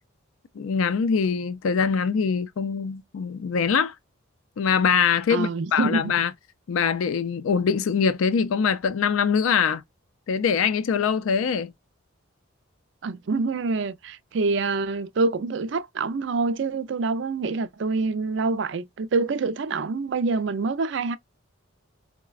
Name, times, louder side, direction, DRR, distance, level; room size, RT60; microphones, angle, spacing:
voice 1, 0.6-3.9 4.6-6.3 6.7-9.8 10.3-11.7, left 6 dB, 80° left, 0.4 m, -23 dB
voice 2, 5.3-6.1 13.0-21.2, right 3 dB, 60° right, 0.4 m, -26 dB
4.7 x 2.1 x 2.3 m
head